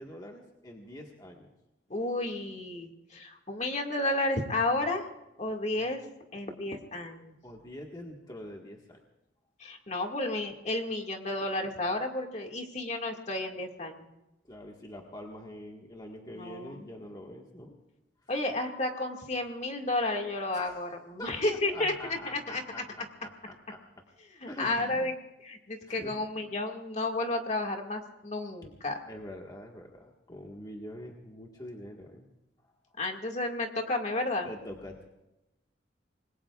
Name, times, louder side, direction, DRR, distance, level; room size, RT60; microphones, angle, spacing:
voice 1, 0.0-1.5 5.7-5.9 7.4-9.0 14.4-17.8 20.5-24.0 24.5-25.1 25.9-26.1 29.1-32.3 32.6-33.0 34.4-35.1, left 1 dB, 20° left, 0 dB, 1.7 m, -45 dB
voice 2, 1.9-5.0 5.4-6.0 6.3-7.3 9.6-14.1 16.3-16.9 18.3-22.8 24.4-25.1 25.4-29.0 33.0-34.5, left 2 dB, 40° left, 3 dB, 2.1 m, -32 dB
27.0 x 21.0 x 2.5 m, 0.94 s
head